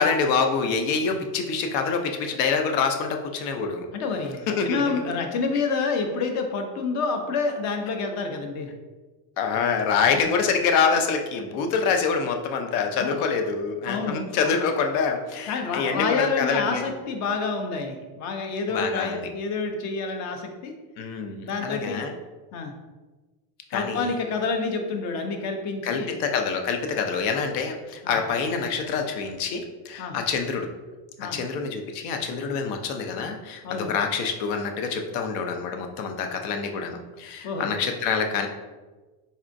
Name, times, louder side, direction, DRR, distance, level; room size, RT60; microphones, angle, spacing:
voice 1, 0.0-3.9 4.5-5.0 9.4-16.8 18.7-19.3 21.0-22.1 23.7-24.2 25.8-30.7 31.3-38.5, left 5 dB, 75° left, 5 dB, 0.7 m, -26 dB
voice 2, 3.9-8.7 10.1-10.2 13.0-13.3 13.9-14.5 15.5-20.7 21.4-22.1 22.5-22.7 23.7-26.2 28.0-28.2 30.0-30.2 31.2-31.4 33.6-33.9 37.4-37.7, left 4 dB, 40° left, 5 dB, 0.4 m, -28 dB
4.2 x 3.5 x 2.5 m, 1.3 s
cardioid pair, 160°, 47 cm